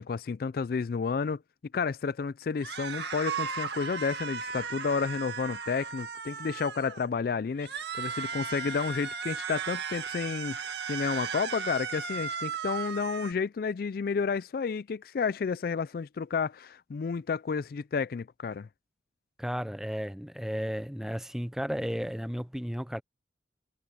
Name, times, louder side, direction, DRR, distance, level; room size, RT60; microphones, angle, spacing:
voice 1, 0.0-1.4 1.7-18.7, left 5 dB, 55° left, 0.3 m, -31 dB
sound 1, 2.6-7.1 7.6-13.3, right 6 dB, 70° right, 2.0 m, -36 dB
voice 2, 19.4-23.0, equal, 5° right, 0.6 m, -33 dB
head